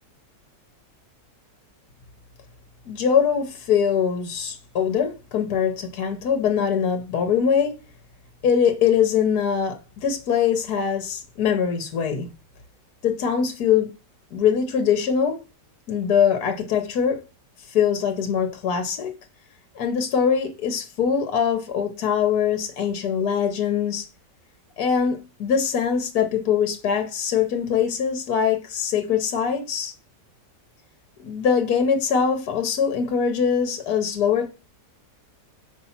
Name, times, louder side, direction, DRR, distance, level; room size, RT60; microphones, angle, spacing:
voice 1, 2.9-7.8 8.4-12.3 13.0-13.9 14.3-15.4 15.9-17.2 17.7-19.1 19.8-24.0 24.8-29.9 31.2-34.5, left 7 dB, 65° left, 1.3 m, -22 dB
5.5 x 4.2 x 5.7 m
omnidirectional pair, 1.9 m